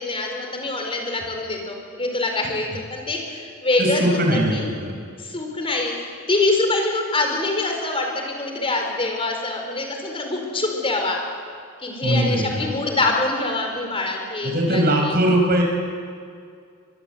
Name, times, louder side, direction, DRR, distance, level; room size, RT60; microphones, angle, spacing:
voice 1, 0.0-4.7 5.2-11.2 11.8-15.2, left 2 dB, 25° left, 2 dB, 4.6 m, -25 dB
voice 2, 3.8-4.9 12.0-12.7 14.4-15.6, right 1 dB, 45° right, 2 dB, 5.6 m, -20 dB
24.5 x 22.0 x 8.2 m, 2.2 s
head